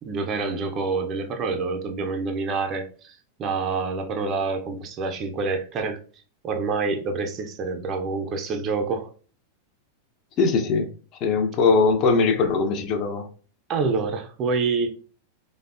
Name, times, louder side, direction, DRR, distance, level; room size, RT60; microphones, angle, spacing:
voice 1, 0.0-6.0 6.4-9.1 13.7-14.9, right 4 dB, 30° right, 0.4 m, -27 dB
voice 2, 10.4-10.9 11.2-13.3, left 4 dB, 35° left, 0.4 m, -21 dB
3.3 x 2.0 x 2.3 m
figure-of-eight pair, 90°, 0 cm